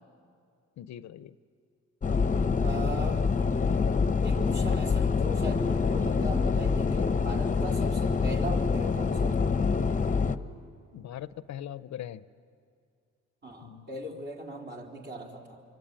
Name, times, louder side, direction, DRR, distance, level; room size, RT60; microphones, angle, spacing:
voice 1, 0.8-1.4 10.9-12.2 13.6-13.9, left 11 dB, 65° left, 15 dB, 0.7 m, -41 dB
sound 1, 2.0-10.4, left 5 dB, 25° left, 0.9 m, -26 dB
voice 2, 2.6-3.3 4.2-9.5 13.4-15.6, right 1 dB, 35° right, 0 dB, 4.1 m, -39 dB
27.0 x 24.0 x 8.9 m, 2.3 s
cardioid pair, 90°, 30 cm